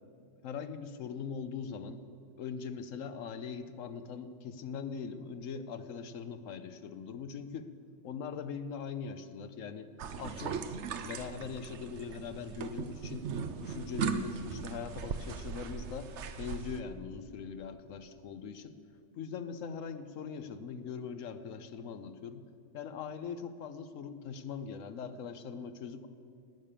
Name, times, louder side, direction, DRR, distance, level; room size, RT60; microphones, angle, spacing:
voice 1, 0.4-2.0 2.4-7.7 8.0-9.9 10.2-10.6 11.0-13.2 13.6-18.7 19.1-22.4 22.7-26.1, left 6 dB, 85° left, 10 dB, 1.2 m, -41 dB
sound 1, 10.0-16.8, right 6 dB, 65° right, 1.0 m, -38 dB
18.5 x 8.9 x 6.8 m, 2.6 s
omnidirectional pair, 1.3 m